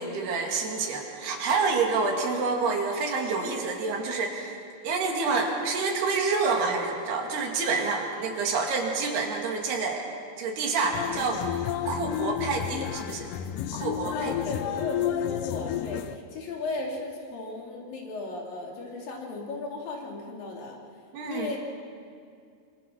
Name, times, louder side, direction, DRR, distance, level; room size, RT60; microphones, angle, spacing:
voice 1, 0.0-4.5 4.8-10.1 10.4-11.4 11.8-13.3 13.7-14.3 21.1-21.6, right 4 dB, 75° right, 1 dB, 4.5 m, -28 dB
sound 1, 10.9-16.2, left 11 dB, 80° left, 1.9 m, -31 dB
voice 2, 14.1-20.8 21.2-21.6, left 3 dB, 60° left, 0 dB, 4.3 m, -35 dB
26.0 x 25.5 x 6.2 m, 2.3 s
omnidirectional pair, 4.7 m